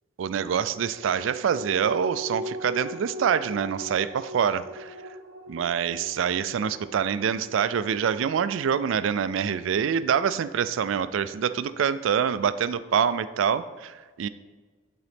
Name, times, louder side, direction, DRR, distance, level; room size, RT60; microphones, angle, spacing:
voice 1, 0.2-4.9 5.5-14.3, right 7 dB, 75° right, 14 dB, 0.3 m, -26 dB
sound 1, 0.5-11.3 11.7-11.8, equal, 50° right, 0.9 m, -41 dB
11.0 x 3.9 x 3.5 m, 1.4 s
head